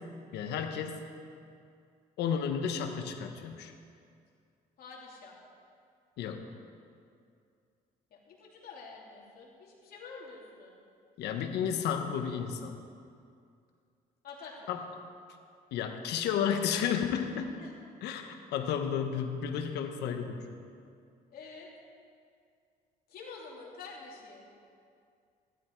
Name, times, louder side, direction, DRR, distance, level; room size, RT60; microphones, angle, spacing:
voice 1, 0.3-1.0 2.2-3.7 6.2-6.4 11.2-12.8 14.7-14.8 15.7-17.5 18.0-20.4, left 7 dB, 80° left, 5 dB, 1.2 m, -32 dB
voice 2, 4.8-5.4 8.1-10.8 14.2-14.7 17.6-17.7 21.3-21.7 23.1-24.5, left 4 dB, 60° left, -3 dB, 3.1 m, -48 dB
15.0 x 12.5 x 4.7 m, 2.3 s
cardioid pair, 110°, 17 cm